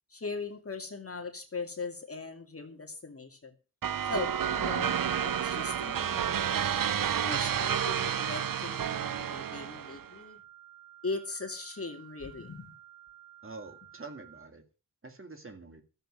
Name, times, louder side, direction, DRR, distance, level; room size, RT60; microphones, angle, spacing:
voice 1, 0.1-3.5 4.1-6.6 7.1-10.4 11.0-12.7, left 4 dB, 40° left, 4 dB, 2.3 m, -39 dB
sound 1, 3.8-10.0, right 9 dB, 65° right, 0.7 m, -30 dB
sound 2, 4.5-14.4, right 12 dB, 80° right, 3.5 m, -54 dB
voice 2, 13.4-14.6 15.0-15.8, right 3 dB, 35° right, 6 dB, 2.2 m, -46 dB
13.5 x 8.0 x 6.5 m, 0.33 s
wide cardioid pair, 105°, 36 cm